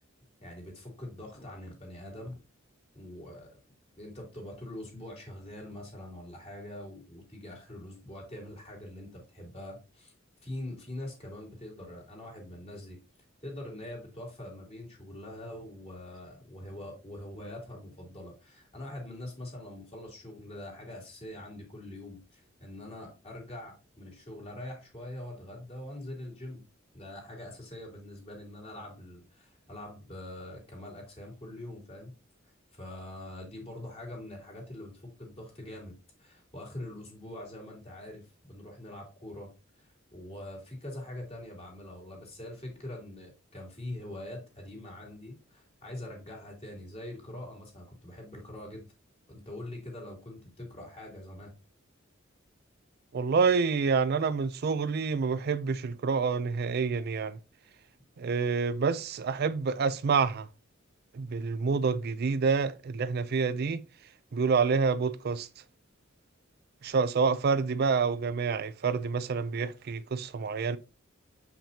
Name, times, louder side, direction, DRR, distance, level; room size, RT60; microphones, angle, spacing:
voice 1, 0.4-2.4 2.9-3.5 4.0-10.1 10.4-13.0 13.4-26.6 26.9-32.1 32.7-48.8 49.3-51.5, left 1 dB, 30° left, 3.0 m, -43 dB
voice 2, 53.1-57.4 58.2-60.5 61.1-63.8 64.3-65.5 66.8-70.8, right 5 dB, 50° right, 0.4 m, -28 dB
7.1 x 5.8 x 2.8 m
head